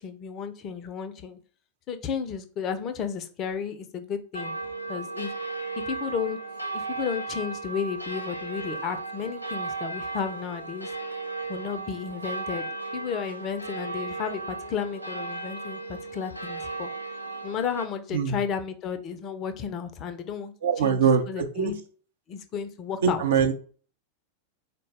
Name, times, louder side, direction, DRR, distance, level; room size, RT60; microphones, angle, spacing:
voice 1, 0.0-1.4 1.9-4.5 4.9-5.3 5.9-6.4 6.7-10.9 11.5-16.9 17.4-21.8 22.3-23.2, left 7 dB, 35° left, 0.5 m, -33 dB
sound 1, 4.3-17.9, right 3 dB, 85° left, 0.5 m, -35 dB
voice 2, 20.6-21.7 23.0-23.5, right 7 dB, 60° right, 0.6 m, -23 dB
3.9 x 2.1 x 3.3 m
figure-of-eight pair, 90°, 0 cm